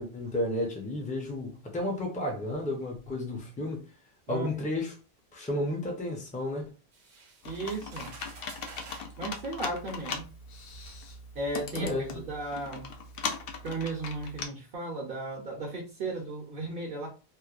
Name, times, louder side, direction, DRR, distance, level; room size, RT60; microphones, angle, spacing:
voice 1, 0.0-3.8 4.3-4.9 5.3-6.7 11.7-12.2, left 1 dB, 10° left, 0.5 m, -32 dB
voice 2, 4.3-4.6 7.4-8.1 9.2-10.2 11.3-12.9 13.6-17.1, right 3 dB, 60° right, 0.9 m, -35 dB
sound 1, 6.9-9.2 10.1-10.2 10.8-11.0, right 4 dB, 90° right, 1.0 m, -50 dB
Computer keyboard, 7.4-14.5, left 5 dB, 70° left, 0.7 m, -39 dB
3.0 x 2.1 x 2.4 m
omnidirectional pair, 1.1 m